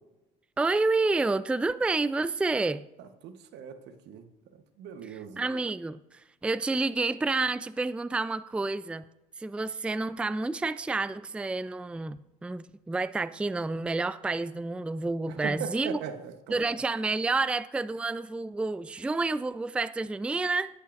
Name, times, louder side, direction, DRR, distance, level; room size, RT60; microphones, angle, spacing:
voice 1, 0.6-2.9 5.1-9.0 9.4-16.0 16.5-20.7, right 3 dB, 5° right, 16 dB, 0.3 m, -29 dB
voice 2, 3.0-4.3 4.5-5.4 15.3-16.7, right 8 dB, 75° right, 8 dB, 1.1 m, -40 dB
16.5 x 8.5 x 2.6 m, 0.95 s
supercardioid pair, 70°, 18 cm